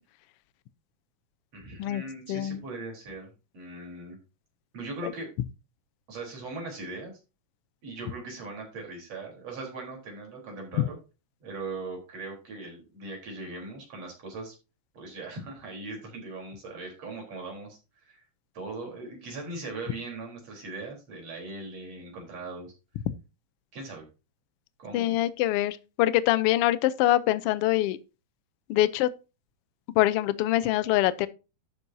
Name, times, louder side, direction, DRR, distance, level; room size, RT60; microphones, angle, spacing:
voice 1, 1.5-4.2 4.7-5.3 6.1-7.1 7.8-11.0 11.4-14.5 14.9-18.2 18.5-22.7 23.7-24.0 24.8-25.2, right 3 dB, 55° right, 5.0 m, -39 dB
voice 2, 2.3-2.6 5.0-5.1 10.8-10.9 23.1-23.2 24.9-28.0 28.7-29.1 29.9-31.3, left 14 dB, 85° left, 1.3 m, -24 dB
12.0 x 8.5 x 2.7 m
omnidirectional pair, 3.5 m